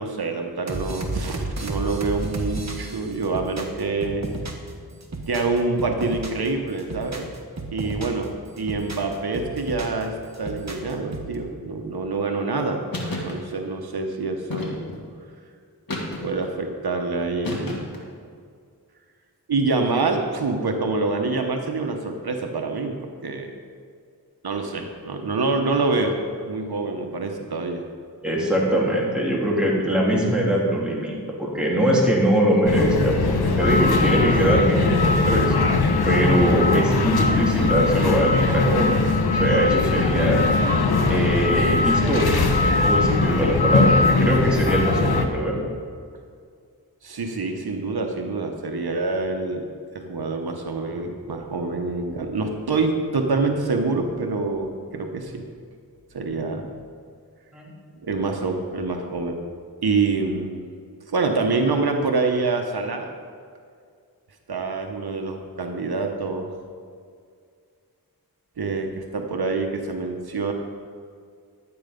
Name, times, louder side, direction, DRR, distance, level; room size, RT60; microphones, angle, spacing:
voice 1, 0.0-4.3 5.3-7.3 7.7-12.8 13.2-14.8 16.2-17.9 19.5-23.0 23.2-23.5 24.4-26.2 26.4-27.9 47.0-49.6 49.9-55.4 56.1-56.7 58.0-59.4 59.8-60.6 61.1-63.1 64.5-66.5 68.6-70.5, right 3 dB, 80° right, 3 dB, 1.1 m, -26 dB
sound 1, 0.7-4.7 5.0-6.5 6.8-8.2 8.6-10.0 10.3-11.3, right 2 dB, 45° right, 1.5 m, -32 dB
sound 2, 12.9-13.4 14.5-15.1 15.9-16.5 17.4-18.1, left 2 dB, 65° left, 2.2 m, -31 dB
voice 2, 28.2-35.5 36.0-39.0 39.3-40.4 41.1-45.6 57.5-57.7, right 1 dB, ahead, -5 dB, 3.1 m, -22 dB
sound 3, 32.7-45.3, left 3 dB, 80° left, 1.0 m, -20 dB
12.0 x 8.8 x 5.2 m, 2.2 s
wide cardioid pair, 65°, 37 cm